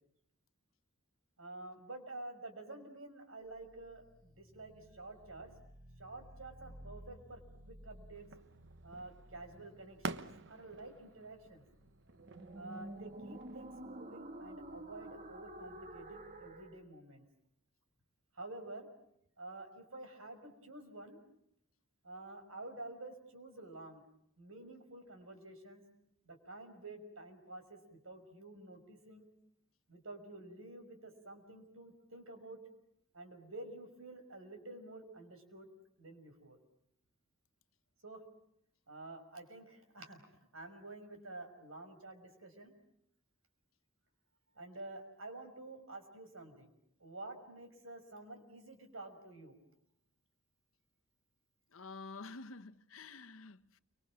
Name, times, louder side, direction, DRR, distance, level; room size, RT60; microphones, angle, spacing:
voice 1, 1.4-5.5 6.0-8.3 8.8-11.6 12.5-17.2 18.3-18.9 19.4-21.2 22.0-24.0 24.4-25.8 26.2-29.2 29.9-32.6 33.1-35.7 36.0-36.6 38.0-38.2 38.9-40.2 40.5-42.7 44.5-46.7 47.0-49.6, right 2 dB, 80° right, 5.7 m, -50 dB
sound 1, 3.5-16.8, right 1 dB, 40° right, 1.8 m, -52 dB
sound 2, 8.1-13.8, right 3 dB, 60° right, 1.2 m, -49 dB
voice 2, 51.7-53.8, left 3 dB, 80° left, 1.0 m, -49 dB
29.5 x 25.5 x 7.5 m
head